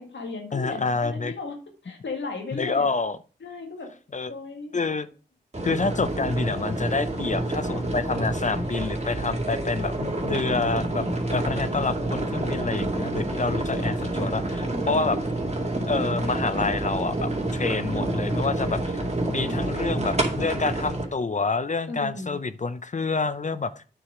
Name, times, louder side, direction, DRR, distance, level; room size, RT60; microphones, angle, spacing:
voice 1, 0.0-1.6 1.8-2.9 3.4-3.9 4.3-4.8 9.1-9.4 12.0-12.7 14.6-15.0 17.8-18.2 19.2-20.1 21.9-22.4, left 3 dB, 85° left, 3 dB, 2.1 m, -37 dB
voice 2, 0.5-1.3 2.5-3.2 4.1-4.3 4.7-5.1 5.6-11.1 11.3-15.2 15.8-18.8 19.3-23.8, left 4 dB, 40° left, 13 dB, 0.6 m, -27 dB
sound 1, 5.5-21.0, right 2 dB, 35° right, 2.4 m, -28 dB
8.8 x 4.8 x 4.9 m, 0.36 s
cardioid pair, 45°, 19 cm